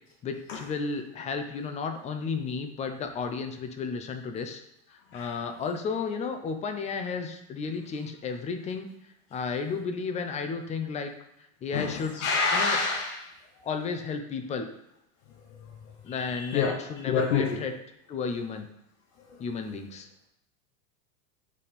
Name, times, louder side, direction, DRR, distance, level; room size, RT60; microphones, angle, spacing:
voice 1, 0.2-4.6 5.1-8.9 9.3-11.1 11.6-12.2 12.5-12.8 13.6-14.7 16.0-17.7 18.1-18.7 19.4-20.1, left 5 dB, 15° left, 6 dB, 0.5 m, -33 dB
voice 2, 11.7-13.2 15.5-15.6 16.1-17.6 19.3-19.4, left 5 dB, 65° left, 1 dB, 1.1 m, -28 dB
8.1 x 3.5 x 4.2 m, 0.81 s
supercardioid pair, 145°, 40 cm